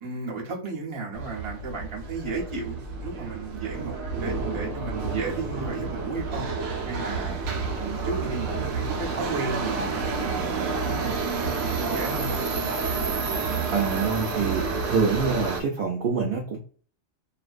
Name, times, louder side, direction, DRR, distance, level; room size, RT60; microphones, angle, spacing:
voice 1, 0.0-6.5 6.9-7.4 7.8-10.5 10.8-12.4, right 3 dB, 25° right, -3 dB, 0.7 m, -34 dB
Subway metro underground, 1.1-15.6, right 4 dB, 85° right, 1.0 m, -29 dB
voice 2, 13.7-16.6, right 5 dB, 60° right, -1 dB, 0.5 m, -26 dB
2.5 x 2.2 x 2.4 m, 0.43 s
omnidirectional pair, 1.4 m